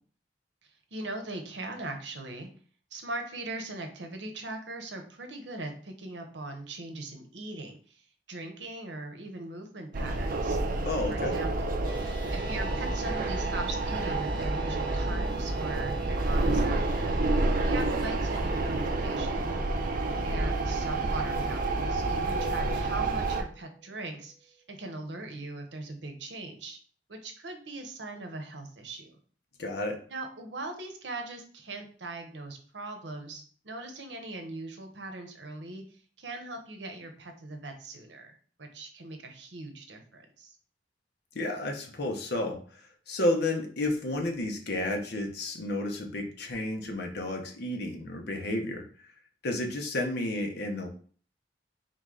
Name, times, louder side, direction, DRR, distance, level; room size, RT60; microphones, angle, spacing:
voice 1, 0.9-2.5 2.9-8.0 8.3-10.6 11.1-11.7 12.3-17.1 17.6-19.4 20.2-26.8 27.1-29.2 30.1-35.8 36.2-40.6, right 2 dB, 75° right, 5 dB, 0.9 m, -40 dB
sound 1, 9.9-23.4, right 2 dB, 50° right, 0.6 m, -29 dB
voice 2, 10.8-11.4 29.6-30.0 41.3-42.6 43.1-48.8 49.4-50.9, left 1 dB, 65° left, 3 dB, 0.9 m, -31 dB
sound 2, 11.8-24.2, right 6 dB, 20° right, 1.0 m, -46 dB
3.9 x 3.2 x 3.8 m, 0.44 s
head